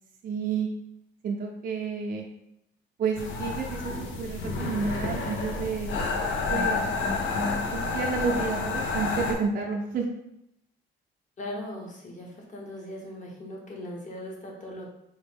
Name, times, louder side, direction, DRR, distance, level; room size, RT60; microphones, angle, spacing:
voice 1, 0.2-0.7 1.2-2.2 3.0-5.9 6.5-6.8 7.7-10.1, right 5 dB, 50° right, 0 dB, 0.5 m, -30 dB
sound 1, 3.1-9.3, left 3 dB, 75° left, 0.6 m, -29 dB
voice 2, 11.4-14.9, left 1 dB, 40° left, -1 dB, 1.1 m, -39 dB
4.2 x 2.1 x 3.4 m, 0.81 s
cardioid pair, 90°, 20 cm